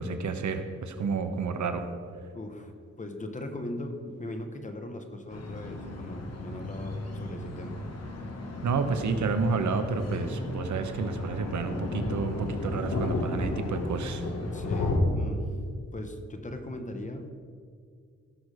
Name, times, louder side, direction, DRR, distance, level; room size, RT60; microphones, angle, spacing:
voice 1, 0.0-1.8 8.6-14.3, right 4 dB, 75° right, 8 dB, 1.0 m, -30 dB
voice 2, 2.3-2.7 3.0-7.8 14.5-15.6 15.9-17.3, left 1 dB, 25° left, 6 dB, 1.1 m, -39 dB
sound 1, 5.3-15.0, left 2 dB, 60° left, 1.6 m, -34 dB
17.0 x 6.4 x 5.0 m, 2.1 s
wide cardioid pair, 135°, 29 cm